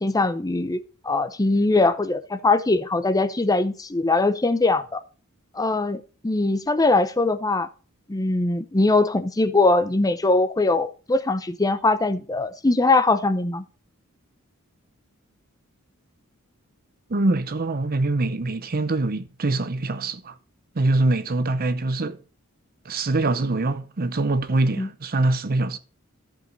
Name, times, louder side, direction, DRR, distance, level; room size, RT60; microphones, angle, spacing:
voice 1, 0.0-5.0 5.5-7.7 8.1-13.6 24.8-24.9, left 2 dB, 15° left, 0.6 m, -21 dB
voice 2, 17.1-20.3 20.7-22.2 22.9-25.8, right 2 dB, 45° right, 0.7 m, -24 dB
14.0 x 5.1 x 4.0 m
head